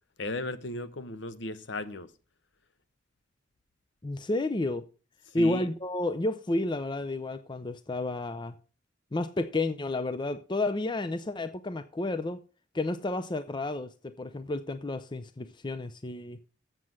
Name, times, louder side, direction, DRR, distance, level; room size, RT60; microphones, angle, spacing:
voice 1, 0.2-2.1 5.3-5.7, left 1 dB, 65° left, 1.0 m, -35 dB
voice 2, 4.0-4.8 5.3-8.6 9.1-12.4 12.7-16.4, left 2 dB, 25° left, 0.5 m, -31 dB
7.6 x 7.5 x 6.3 m
head